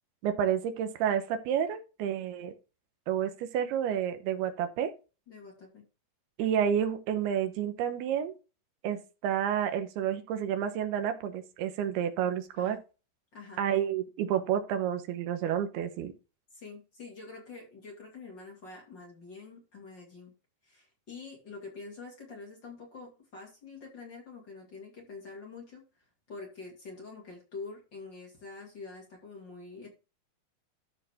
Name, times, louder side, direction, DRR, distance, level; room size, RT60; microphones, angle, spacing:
voice 1, 0.2-2.5 3.1-4.9 6.4-8.3 8.8-12.8 13.6-16.1, right 9 dB, 90° right, 8 dB, 3.1 m, -30 dB
voice 2, 5.3-5.8 12.6-12.8 13.3-13.6 16.5-20.3 20.6-25.8 26.3-29.9, left 4 dB, 35° left, -1 dB, 2.3 m, -46 dB
13.0 x 4.7 x 3.6 m, 0.31 s
omnidirectional pair, 4.4 m